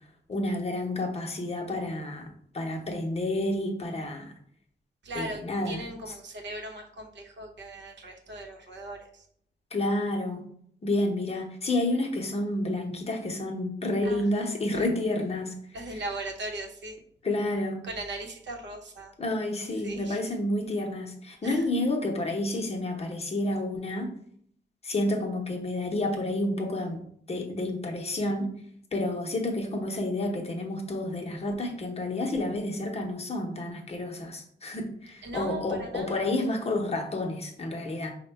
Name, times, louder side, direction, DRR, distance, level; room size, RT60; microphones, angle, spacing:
voice 1, 0.3-2.3 2.5-4.3 5.1-5.8 9.7-10.5 10.8-15.5 15.9-16.0 17.2-17.8 19.2-24.1 24.8-27.0 27.3-28.5 28.9-38.1, left 1 dB, 35° left, 2 dB, 0.7 m, -30 dB
voice 2, 5.0-9.3 14.0-14.3 14.7-14.9 15.7-17.0 17.8-19.1 19.8-20.2 21.4-21.7 35.2-36.3, right 2 dB, 85° right, 3 dB, 0.8 m, -38 dB
5.0 x 2.1 x 4.5 m, 0.65 s
wide cardioid pair, 155°, 18 cm